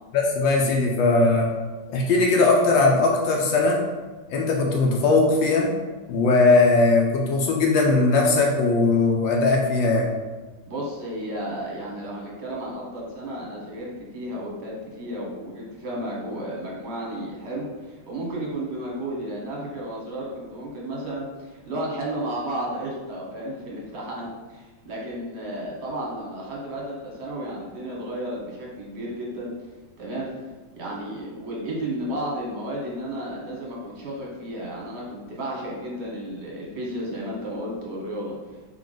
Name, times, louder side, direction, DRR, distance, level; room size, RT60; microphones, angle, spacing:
voice 1, 0.1-1.5 1.9-3.8 4.3-5.7 6.1-10.1, left 3 dB, 80° left, 0 dB, 1.4 m, -19 dB
voice 2, 10.7-29.5 30.0-30.3 30.8-38.4, right 1 dB, 45° right, -3 dB, 1.0 m, -33 dB
3.8 x 3.3 x 3.8 m, 1.3 s
omnidirectional pair, 2.0 m